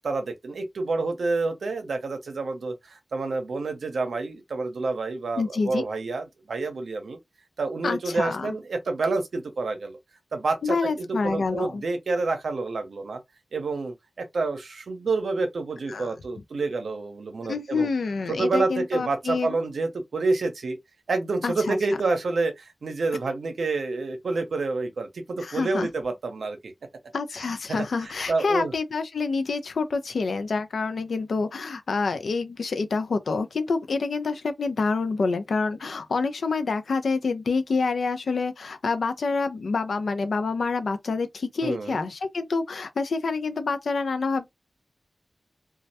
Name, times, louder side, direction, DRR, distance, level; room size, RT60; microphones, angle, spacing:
voice 1, 0.0-7.2 7.6-10.0 10.3-13.2 13.5-17.9 18.3-20.8 21.1-26.7 28.0-28.7 41.6-42.1, right 3 dB, 85° right, 0.6 m, -28 dB
voice 2, 5.4-5.8 7.8-8.5 10.6-11.8 15.9-16.1 17.4-19.6 21.4-21.8 25.4-25.9 27.1-44.5, left 4 dB, 80° left, 0.4 m, -27 dB
2.2 x 2.1 x 2.7 m
cardioid pair, 45°, 0 cm